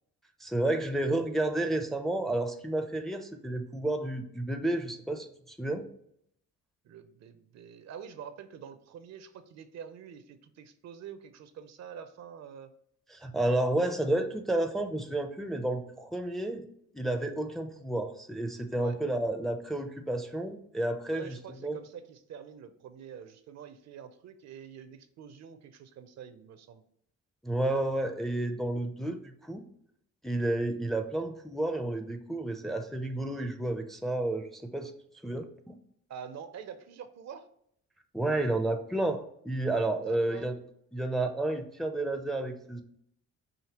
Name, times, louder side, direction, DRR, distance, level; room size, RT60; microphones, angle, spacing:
voice 1, 0.4-5.9 13.1-16.7 16.9-21.8 27.4-29.6 30.2-34.9 35.2-35.8 38.1-40.6 40.9-42.8, right 2 dB, ahead, 6 dB, 0.5 m, -31 dB
voice 2, 6.8-12.7 18.7-19.0 21.1-26.8 36.1-37.5 40.0-40.5, right 8 dB, 60° right, 10 dB, 0.6 m, -46 dB
5.0 x 2.7 x 2.9 m, 0.72 s
cardioid pair, 90°, 30 cm